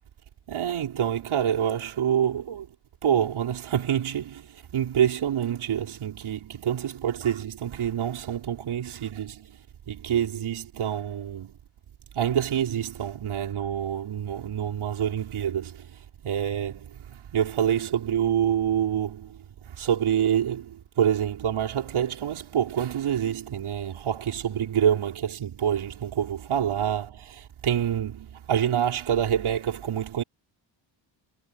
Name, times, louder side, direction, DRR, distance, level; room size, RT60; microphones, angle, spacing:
voice 1, 0.5-2.7 3.0-9.5 9.9-11.5 12.1-15.9 16.2-19.4 19.7-30.2, right 9 dB, 70° right, 4.6 m, -27 dB
cardioid pair, 70°, 50 cm